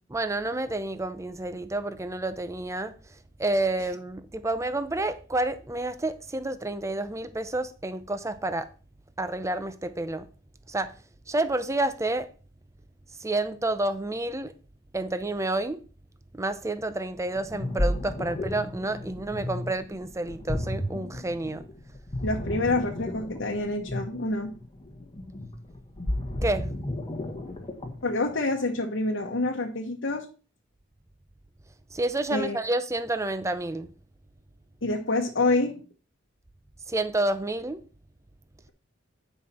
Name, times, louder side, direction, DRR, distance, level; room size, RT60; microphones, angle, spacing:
voice 1, 0.1-2.9 3.4-8.7 9.2-10.2 10.7-10.9 11.3-12.3 13.2-14.5 14.9-15.8 16.4-21.6 26.4-26.7 31.9-33.9 36.9-37.8, right 2 dB, 15° right, 0.6 m, -29 dB
Ocean, 17.3-28.1, left 1 dB, 30° left, 1.4 m, -32 dB
voice 2, 22.2-24.5 28.0-30.2 32.3-32.6 34.8-35.8, left 2 dB, 65° left, 1.1 m, -27 dB
9.6 x 5.5 x 4.3 m
head